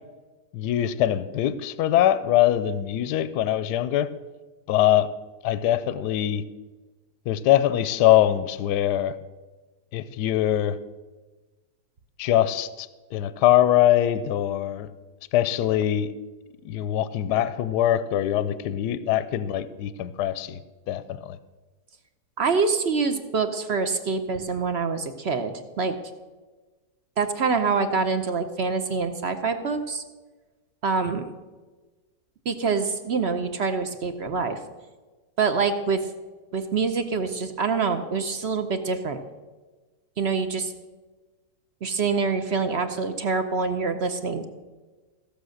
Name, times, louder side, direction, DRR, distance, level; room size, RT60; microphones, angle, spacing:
voice 1, 0.5-4.1 4.7-5.1 5.4-6.4 7.3-9.2 9.9-10.8 12.2-14.9 15.3-16.1 16.6-20.6 20.9-21.4, left 12 dB, 75° left, 15 dB, 1.1 m, -23 dB
voice 2, 22.4-25.9 27.2-30.0 30.8-31.3 32.5-34.6 35.4-36.0 36.5-39.2 40.2-40.7 41.8-44.4, right 4 dB, 55° right, 8 dB, 0.7 m, -25 dB
15.5 x 6.7 x 6.4 m, 1.3 s
omnidirectional pair, 1.9 m